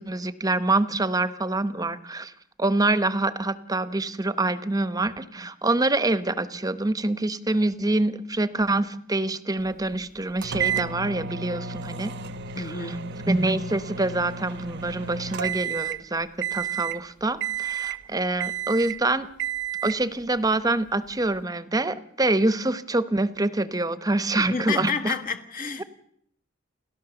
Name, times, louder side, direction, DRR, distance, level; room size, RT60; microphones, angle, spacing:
voice 1, 0.0-2.3 2.6-12.1 12.6-13.0 13.3-19.3 19.8-25.1 25.8-25.9, right 2 dB, 20° right, 1.0 m, -25 dB
sound 1, 10.4-16.1 16.4-17.0 17.4-18.1 18.4-19.0 19.4-20.0, right 8 dB, 60° right, 0.9 m, -31 dB
voice 2, 12.5-13.1 24.3-25.8, left 5 dB, 45° left, 1.6 m, -30 dB
29.0 x 13.0 x 7.0 m
head